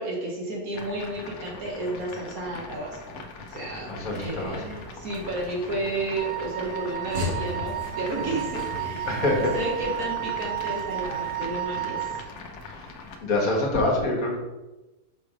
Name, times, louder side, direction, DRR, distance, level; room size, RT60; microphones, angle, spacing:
voice 1, 0.0-3.0 3.5-12.2, right 2 dB, 70° right, -3 dB, 1.6 m, -32 dB
sound 1, 0.7-13.2, left 3 dB, 85° left, 1.3 m, -42 dB
sound 2, 3.8-11.7, left 1 dB, 50° right, 1.5 m, -39 dB
voice 2, 3.9-4.6 9.1-9.6 12.7-13.0 13.2-14.4, left 2 dB, 65° left, -1 dB, 1.7 m, -25 dB
Wind instrument woodwind instrument, 6.2-12.3, right 14 dB, 90° right, 1.1 m, -32 dB
6.0 x 3.4 x 4.9 m, 1.1 s
omnidirectional pair, 1.6 m